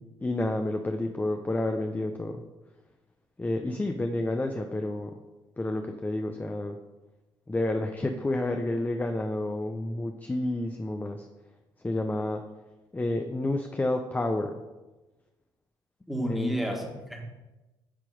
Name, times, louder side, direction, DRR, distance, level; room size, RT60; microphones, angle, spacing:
voice 1, 0.2-2.4 3.4-5.2 5.6-6.8 7.5-11.3 11.8-12.4 12.9-14.6 16.3-16.6, left 2 dB, 15° left, 5 dB, 0.6 m, -30 dB
voice 2, 16.1-17.2, right 1 dB, ahead, 0 dB, 1.7 m, -30 dB
8.5 x 3.0 x 4.9 m, 1.1 s
hypercardioid pair, 55°, 11 cm